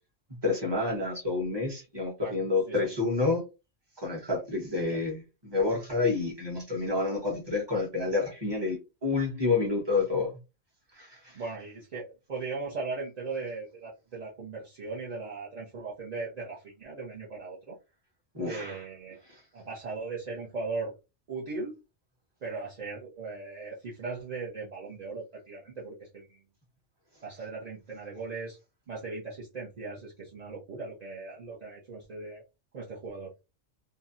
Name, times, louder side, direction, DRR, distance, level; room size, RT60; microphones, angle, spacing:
voice 1, 0.4-3.4 4.0-10.3 11.0-11.3 18.3-18.8, left 3 dB, 20° right, 0.9 m, -29 dB
voice 2, 11.3-17.8 18.4-19.2 19.5-20.9 21.3-21.8 22.4-26.4 27.2-28.6 28.9-32.4 32.7-33.3, right 3 dB, 45° right, 0.5 m, -38 dB
2.7 x 2.1 x 2.5 m
omnidirectional pair, 1.3 m